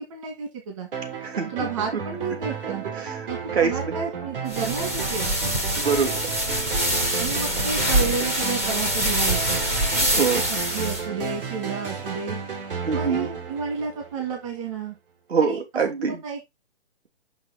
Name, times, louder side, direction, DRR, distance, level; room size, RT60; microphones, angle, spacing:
voice 1, 0.1-0.9 1.4-2.8 3.3-5.4 7.2-9.7 10.3-12.4 12.9-15.0 15.4-15.6 16.2-16.4, right 5 dB, 30° right, 1.8 m, -31 dB
sound 1, 0.9-14.5, right 6 dB, 55° right, 3.1 m, -33 dB
voice 2, 1.2-1.7 3.0-3.3 3.5-3.8 5.8-6.2 10.1-10.4 12.9-13.3 15.3-16.2, right 5 dB, 70° right, 3.1 m, -24 dB
sound 2, 4.5-11.0, right 1 dB, 15° right, 0.6 m, -25 dB
6.2 x 6.0 x 4.0 m
hypercardioid pair, 175°, 33 cm